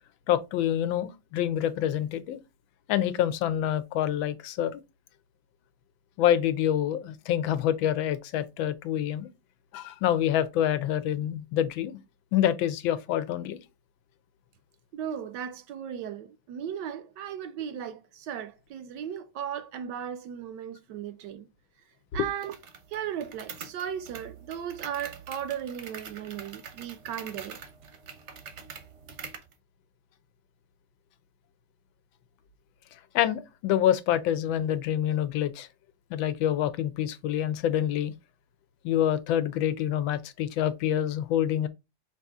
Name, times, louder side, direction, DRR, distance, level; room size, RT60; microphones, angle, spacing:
voice 1, 0.3-2.4 2.9-4.8 6.2-9.3 9.7-12.0 12.3-13.6 33.1-35.7 36.1-38.1 38.8-41.7, left 11 dB, 90° left, 1.4 m, -26 dB
voice 2, 14.9-21.5 22.1-22.6 22.9-27.6, right 9 dB, 75° right, 1.1 m, -36 dB
sound 1, 22.4-29.5, right 6 dB, 55° right, 0.8 m, -45 dB
5.4 x 2.7 x 3.5 m
omnidirectional pair, 2.1 m